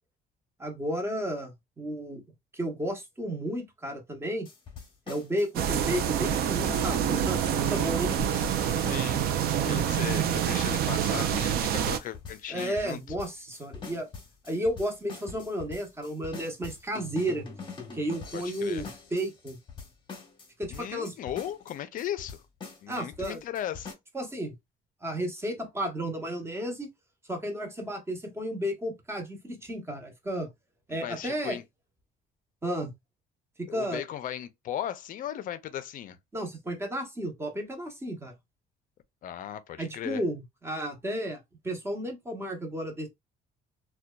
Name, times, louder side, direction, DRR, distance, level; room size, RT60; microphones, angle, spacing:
voice 1, 0.6-2.2 2.5-4.5 5.1-8.1 9.6-9.9 11.0-11.3 12.5-14.1 14.4-17.5 17.9-19.6 20.6-21.1 22.9-23.4 24.1-24.5 25.0-26.9 27.3-30.5 30.9-31.6 32.6-32.9 33.6-34.0 36.3-38.4 39.8-43.1, equal, 15° right, 0.8 m, -33 dB
sound 1, 4.5-23.9, left 5 dB, 30° left, 0.8 m, -43 dB
sound 2, 5.5-12.0, right 9 dB, 65° right, 0.4 m, -27 dB
voice 2, 8.8-9.2 9.6-13.0 18.3-18.9 20.7-22.4 22.8-23.9 30.9-31.6 33.7-36.2 39.2-40.2, left 11 dB, 55° left, 0.4 m, -37 dB
2.6 x 2.2 x 2.2 m
cardioid pair, 110°, 17 cm